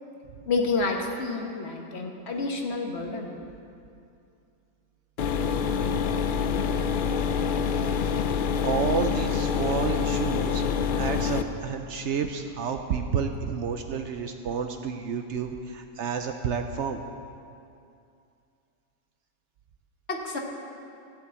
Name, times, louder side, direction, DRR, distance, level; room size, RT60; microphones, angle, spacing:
voice 1, 0.5-3.3 20.1-20.4, left 3 dB, 50° left, 1 dB, 1.3 m, -29 dB
sound 1, 5.2-11.4, left 6 dB, 70° left, 0.5 m, -26 dB
voice 2, 8.6-10.6 11.0-17.0, right 6 dB, 65° right, 6 dB, 0.8 m, -30 dB
14.5 x 5.2 x 8.2 m, 2.5 s
omnidirectional pair, 1.5 m